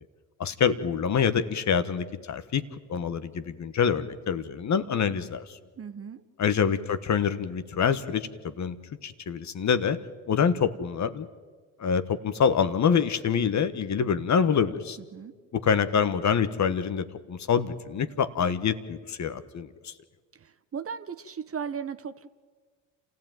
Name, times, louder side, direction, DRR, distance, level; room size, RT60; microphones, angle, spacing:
voice 1, 0.4-2.6 2.9-5.6 6.4-8.8 9.0-10.0 10.3-11.3 11.8-15.0 15.5-19.9, left 7 dB, 40° left, 12 dB, 1.3 m, -26 dB
voice 2, 5.8-6.2 15.1-15.3 20.4-22.3, right 7 dB, 30° right, 12 dB, 1.0 m, -36 dB
27.5 x 15.5 x 9.2 m, 1.5 s
supercardioid pair, 75°, 42 cm